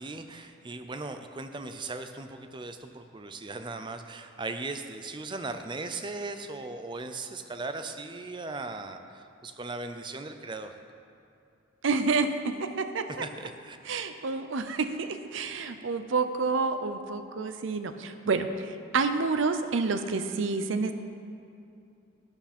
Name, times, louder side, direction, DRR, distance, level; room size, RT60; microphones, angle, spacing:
voice 1, 0.0-10.8 13.2-13.8, right 3 dB, 25° right, 8 dB, 0.5 m, -38 dB
voice 2, 11.8-13.2 13.9-20.9, right 4 dB, 70° right, 9 dB, 0.6 m, -29 dB
11.5 x 10.5 x 4.3 m, 2.6 s
head